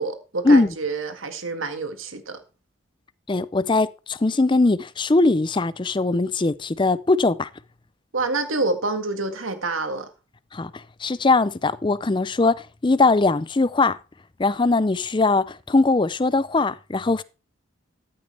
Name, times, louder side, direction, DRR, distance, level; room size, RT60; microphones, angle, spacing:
voice 1, 0.0-2.4 8.1-10.1, right 3 dB, 90° right, 1.9 m, -27 dB
voice 2, 3.3-7.5 10.5-10.7 11.0-14.0 14.4-17.2, left 3 dB, 25° left, 0.5 m, -20 dB
14.0 x 8.7 x 3.4 m
head